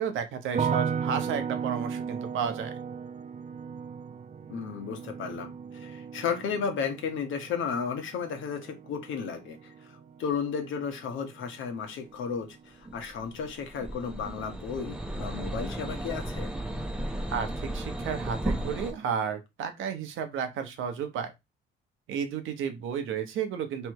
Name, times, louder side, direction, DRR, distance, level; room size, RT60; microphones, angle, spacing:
voice 1, 0.0-2.7 17.3-21.3 22.1-23.9, right 7 dB, 85° right, 1.0 m, -32 dB
sound 1, 0.5-11.6 11.9-12.6, right 6 dB, 35° right, 0.5 m, -36 dB
voice 2, 4.5-16.5, left 6 dB, 80° left, 1.3 m, -34 dB
sound 2, 12.8-18.9, right 1 dB, 5° right, 0.9 m, -34 dB
3.4 x 3.3 x 4.6 m
cardioid pair, 90°, 20 cm